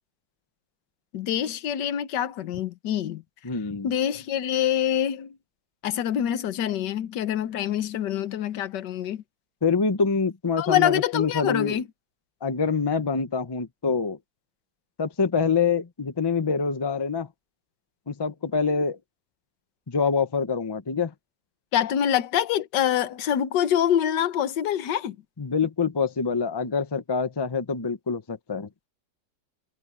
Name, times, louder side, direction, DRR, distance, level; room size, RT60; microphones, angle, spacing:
voice 1, 1.1-3.2 3.8-5.3 5.8-9.2 10.6-11.9 21.7-25.2, left 10 dB, 60° left, 1.6 m, -25 dB
voice 2, 3.4-3.9 9.6-11.8 12.4-14.2 15.0-17.3 18.1-19.0 19.9-21.1 25.4-28.7, left 5 dB, 30° left, 0.4 m, -25 dB
omnidirectional pair, 2.3 m